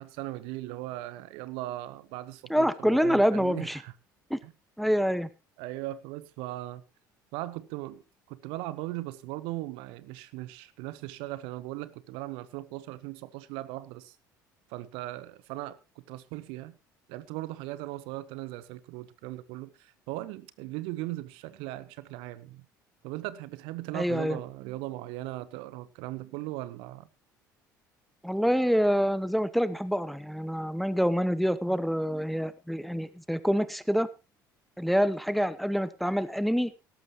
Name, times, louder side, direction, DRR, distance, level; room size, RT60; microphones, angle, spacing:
voice 1, 0.0-3.9 4.4-4.5 5.6-6.8 7.3-8.0 8.3-14.1 14.7-16.7 17.1-22.6 23.0-27.1, right 17 dB, 60° right, 0.9 m, -38 dB
voice 2, 2.5-3.8 4.3-4.4 4.8-5.3 23.9-24.4 28.2-34.1 34.8-36.7, equal, ahead, 0.8 m, -26 dB
18.0 x 13.0 x 3.1 m
figure-of-eight pair, 60°, 11 cm